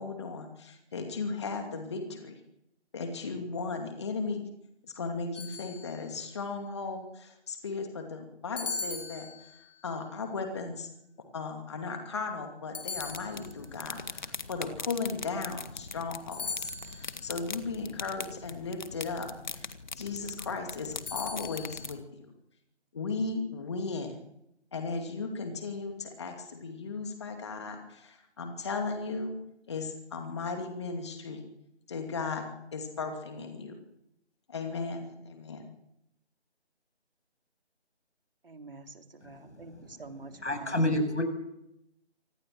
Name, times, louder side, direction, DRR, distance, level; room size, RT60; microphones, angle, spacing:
voice 1, 0.0-2.3 2.9-4.5 4.8-10.9 11.3-22.3 22.9-24.2 24.7-29.4 29.7-31.4 31.9-33.8 34.5-35.7, left 4 dB, 25° left, 4 dB, 2.6 m, -36 dB
sound 1, 5.3-6.3 8.6-9.8 12.7-13.8 16.3-17.3 21.1-21.8, left 4 dB, 10° left, 1.2 m, -39 dB
sound 2, 13.0-22.0, left 4 dB, 40° left, 1.6 m, -42 dB
voice 2, 38.4-40.8, right 3 dB, 55° right, 5 dB, 3.2 m, -47 dB
voice 3, 39.2-39.6 40.4-41.2, left 1 dB, 85° left, 8 dB, 7.7 m, -29 dB
25.5 x 19.0 x 7.7 m, 0.83 s
figure-of-eight pair, 170°, 34 cm